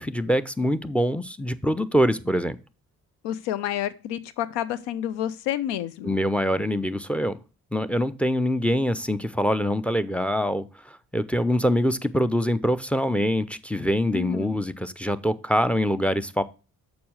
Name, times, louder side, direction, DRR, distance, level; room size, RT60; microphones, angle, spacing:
voice 1, 0.0-2.6 6.0-7.4 7.7-16.4, equal, 5° left, 13 dB, 0.6 m, -24 dB
voice 2, 3.2-6.2 14.1-14.6, left 11 dB, 70° left, 16 dB, 0.7 m, -29 dB
7.0 x 5.2 x 6.3 m, 0.34 s
hypercardioid pair, 45°, 44 cm